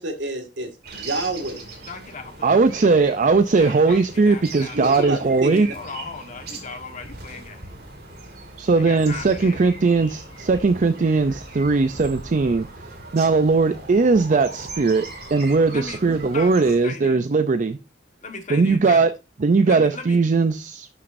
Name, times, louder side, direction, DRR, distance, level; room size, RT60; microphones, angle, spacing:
voice 1, 0.0-1.7 4.7-5.7, right 1 dB, 75° right, 1.9 m, -29 dB
sound 1, 0.8-16.8, right 3 dB, 60° right, 2.6 m, -39 dB
voice 2, 1.9-2.6 3.6-5.2 5.7-7.8 8.8-9.6 15.7-16.0 16.3-17.2 18.2-19.0 19.6-20.2, left 4 dB, 45° left, 1.4 m, -37 dB
voice 3, 2.4-5.7 8.6-17.8 18.5-19.1 19.4-20.9, right 4 dB, 45° right, 0.5 m, -19 dB
12.0 x 6.4 x 2.6 m
head